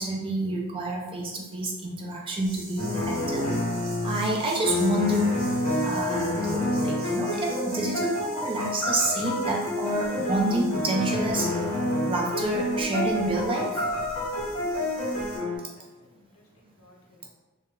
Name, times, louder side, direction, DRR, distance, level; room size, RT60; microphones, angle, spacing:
voice 1, 0.0-3.5 4.0-5.4 5.8-11.6 12.1-13.8, right 2 dB, 25° right, -1 dB, 0.4 m, -28 dB
sound 1, 2.4-15.4, right 2 dB, 70° right, 0.8 m, -46 dB
sound 2, 2.8-15.6, left 1 dB, 35° left, 0.7 m, -28 dB
voice 2, 14.8-17.3, left 1 dB, 80° left, -1 dB, 0.6 m, -60 dB
2.1 x 2.0 x 3.5 m, 1.2 s
head